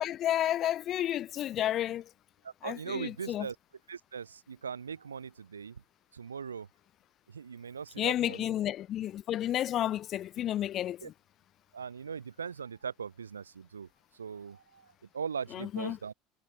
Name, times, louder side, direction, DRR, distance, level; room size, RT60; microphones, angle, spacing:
voice 1, 0.0-2.0 2.6-3.5 8.0-11.1 15.5-16.0, left 12 dB, 45° left, 0.7 m, -31 dB
voice 2, 2.4-3.5 3.9-5.8 6.1-6.7 7.3-8.5 11.0-11.1 11.7-13.9 14.2-14.8 15.1-16.1, right 6 dB, 80° right, 1.4 m, -40 dB
figure-of-eight pair, 70°, 0 cm